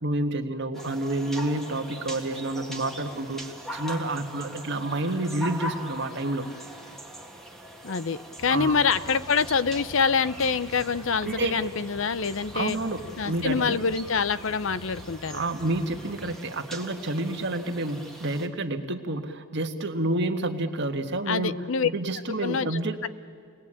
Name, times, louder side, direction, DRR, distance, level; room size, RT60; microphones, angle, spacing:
voice 1, 0.0-6.5 8.5-8.8 11.2-11.6 12.5-13.8 15.3-23.0, right 2 dB, 55° right, 5 dB, 1.7 m, -29 dB
sound 1, 0.7-18.5, equal, ahead, 1.9 m, -42 dB
voice 2, 7.8-12.8 13.2-15.4 21.3-21.9 22.4-23.1, left 5 dB, 60° left, 16 dB, 0.7 m, -26 dB
sound 2, 8.4-16.4, left 2 dB, 80° left, 1.2 m, -46 dB
29.5 x 20.5 x 8.9 m, 2.3 s
head